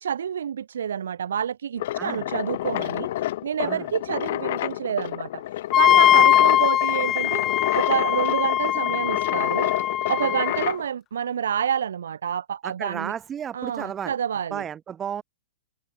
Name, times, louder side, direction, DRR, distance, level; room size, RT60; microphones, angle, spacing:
voice 1, 0.0-5.4 5.7-7.4 7.7-9.7 10.1-13.1 13.5-14.6, right 8 dB, 75° right, 0.5 m, -28 dB
sound 1, 1.8-10.8, left 14 dB, 60° left, 3.5 m, -29 dB
Wind instrument woodwind instrument, 5.7-10.7, left 11 dB, 25° left, 0.3 m, -21 dB
voice 2, 12.6-14.1 14.5-15.2, right 8 dB, 20° right, 1.9 m, -33 dB
open air
hypercardioid pair, 115°, 0 cm